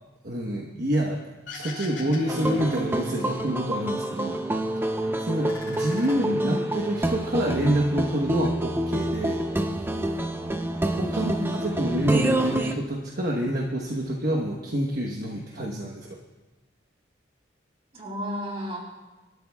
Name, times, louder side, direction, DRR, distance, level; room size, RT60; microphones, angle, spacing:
voice 1, 0.2-1.2 1.5-4.4 4.9-9.5 10.8-11.4 11.6-16.2, right 1 dB, 55° right, -1 dB, 1.1 m, -27 dB
sound 1, 1.5-3.8 4.1-5.0 5.3-6.8, left 3 dB, 70° left, 2.9 m, -42 dB
sound 2, 2.3-12.7, right 1 dB, 10° right, 0.6 m, -28 dB
voice 2, 5.9-6.7 11.1-11.6 17.9-18.8, left 1 dB, 30° right, -2 dB, 3.4 m, -32 dB
26.0 x 13.0 x 2.3 m, 1.2 s
head